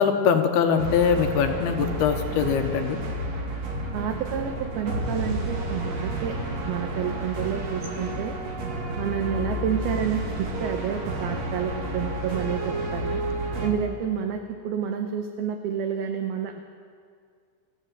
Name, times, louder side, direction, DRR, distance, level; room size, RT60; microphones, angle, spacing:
voice 1, 0.0-3.0, left 7 dB, 70° left, 5 dB, 2.6 m, -22 dB
sound 1, 0.8-13.7, right 1 dB, 45° right, 2.8 m, -31 dB
voice 2, 3.9-6.4 6.7-8.4 9.0-13.2 13.6-16.6, right 8 dB, 75° right, 5 dB, 2.4 m, -29 dB
25.0 x 14.5 x 7.4 m, 2.1 s
omnidirectional pair, 5.4 m